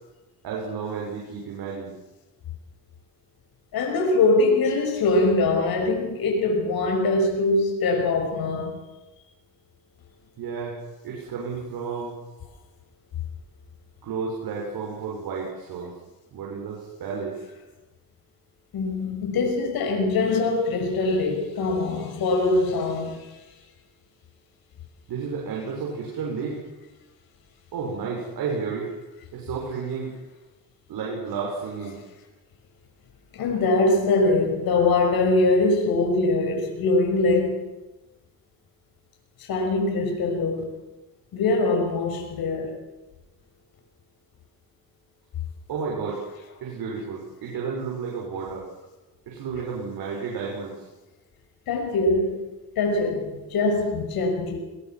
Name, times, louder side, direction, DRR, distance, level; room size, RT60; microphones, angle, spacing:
voice 1, 0.4-1.9 10.4-10.8 11.0-12.2 14.0-16.0 16.3-17.4 25.1-26.6 27.7-28.9 29.3-30.1 30.9-32.0 45.7-46.2 46.6-48.7 49.3-50.8, right 5 dB, 75° right, 6.5 m, -32 dB
voice 2, 3.7-8.8 18.7-23.4 33.3-37.6 39.5-40.8 41.3-42.7 51.7-52.5 52.8-54.6, left 2 dB, 75° left, 6.2 m, -23 dB
22.5 x 22.0 x 6.1 m
cardioid pair, 90°, 37 cm